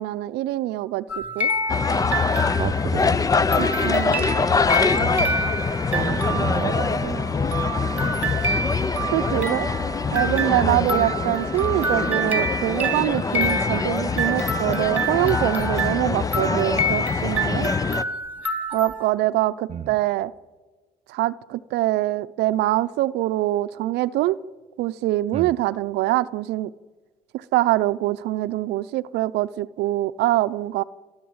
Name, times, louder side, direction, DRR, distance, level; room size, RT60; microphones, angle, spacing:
voice 1, 0.0-1.5 3.6-4.3 9.1-9.7 10.1-17.7 18.7-20.3 21.1-24.4 24.8-26.7 27.3-30.8, right 16 dB, 85° right, 0.6 m, -24 dB
sound 1, 1.1-3.0 3.5-19.1, right 1 dB, 10° right, 2.5 m, -28 dB
sound 2, 1.7-18.0, left 4 dB, 20° left, 0.6 m, -24 dB
voice 2, 2.6-3.2 3.9-4.0 4.9-7.6 10.6-11.1 19.7-20.0 25.3-25.6, right 8 dB, 40° right, 0.6 m, -31 dB
29.0 x 10.5 x 8.7 m
cardioid pair, 110°, 17 cm